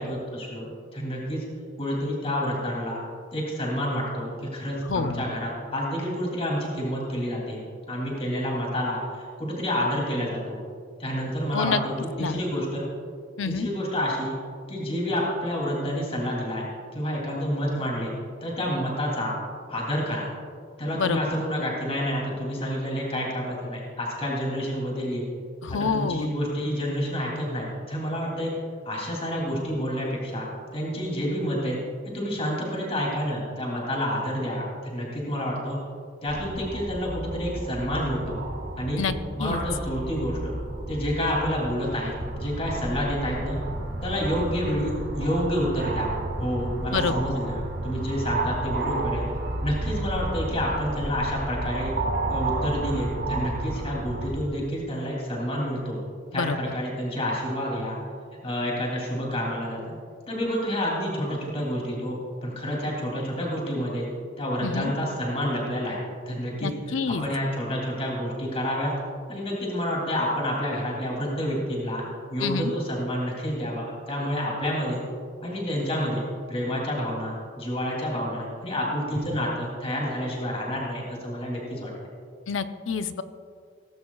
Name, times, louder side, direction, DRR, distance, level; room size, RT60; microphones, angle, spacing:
voice 1, 0.0-1.4 1.8-3.0 3.3-10.6 11.0-12.9 13.4-14.3 14.7-16.7 16.9-18.1 18.4-19.3 19.7-20.3 20.8-25.3 25.7-28.5 28.8-31.8 32.1-35.8 36.2-38.4 38.8-39.0 39.4-40.6 40.9-43.6 44.0-46.1 46.4-49.3 49.6-51.9 52.3-56.0 56.3-58.0 58.4-60.0 60.3-64.1 64.4-66.0 66.3-66.7 67.2-68.9 69.3-72.0 72.3-75.0 75.4-81.9, equal, 30° left, -3 dB, 2.9 m, -29 dB
voice 2, 4.8-5.3 11.5-11.8 12.2-12.4 13.4-13.7 20.9-21.2 25.6-26.3 39.0-39.1 39.4-39.6 46.9-47.3 56.3-56.7 64.6-64.9 66.6-67.2 72.4-72.7 82.5-83.2, left 5 dB, 75° left, 10 dB, 0.6 m, -27 dB
sound 1, 36.3-54.3, right 2 dB, 55° right, 2.3 m, -32 dB
17.5 x 15.5 x 2.4 m, 2.2 s
head